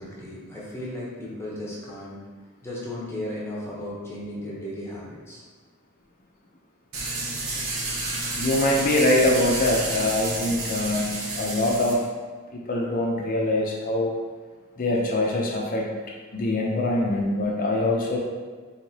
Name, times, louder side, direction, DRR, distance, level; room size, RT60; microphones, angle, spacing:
voice 1, 0.0-2.2 2.6-5.4, left 1 dB, 10° left, -6 dB, 0.8 m, -35 dB
sound 1, 6.9-11.9, right 2 dB, 75° right, 0.9 m, -30 dB
voice 2, 8.4-12.0 12.5-14.1 14.8-15.9 16.3-18.2, left 1 dB, 40° left, -2 dB, 0.5 m, -23 dB
4.7 x 3.6 x 2.8 m, 1.4 s
head